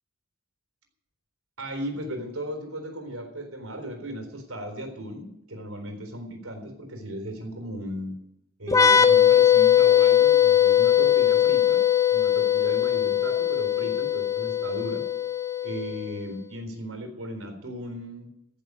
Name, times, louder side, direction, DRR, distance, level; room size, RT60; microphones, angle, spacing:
voice 1, 1.6-8.2 8.6-11.8 12.1-15.0 15.6-18.3, right 1 dB, 80° right, 5 dB, 3.9 m, -36 dB
sound 1, 8.7-16.2, left 9 dB, 15° left, 0.7 m, -20 dB
15.0 x 7.0 x 9.5 m, 0.81 s
head